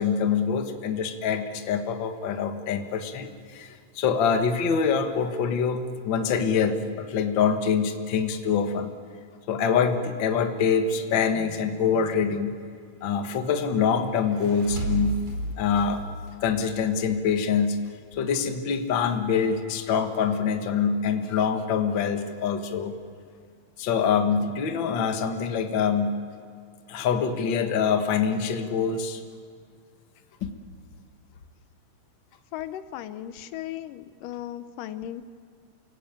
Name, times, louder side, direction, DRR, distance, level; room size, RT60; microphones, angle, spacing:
voice 1, 0.0-8.9 9.5-12.6 13.0-15.2 15.5-16.0 16.4-17.8 18.2-23.0 23.8-26.2 26.9-29.2 30.4-30.5, left 6 dB, 50° left, 6 dB, 1.6 m, -25 dB
sound 1, 14.1-17.5, right 3 dB, 60° right, 6.1 m, -34 dB
voice 2, 32.5-35.2, left 12 dB, 80° left, 11 dB, 2.3 m, -36 dB
28.5 x 17.5 x 9.0 m, 2.1 s
omnidirectional pair, 3.8 m